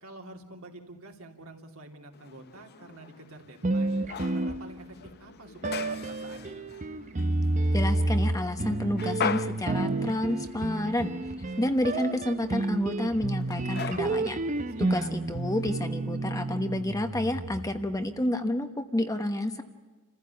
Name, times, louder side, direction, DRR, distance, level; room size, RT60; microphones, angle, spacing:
voice 1, 0.0-4.0 4.3-5.8 6.0-6.7 14.7-15.1, right 2 dB, 65° right, 2 dB, 2.9 m, -47 dB
sound 1, 2.1-15.9, left 6 dB, 45° left, 0.6 m, -41 dB
sound 2, 3.6-5.1 5.6-17.8, right 2 dB, 35° right, 0.7 m, -30 dB
voice 2, 7.7-11.1 11.6-14.4 14.8-19.6, left 1 dB, 15° left, 7 dB, 1.1 m, -29 dB
28.0 x 15.0 x 8.3 m, 1.3 s
head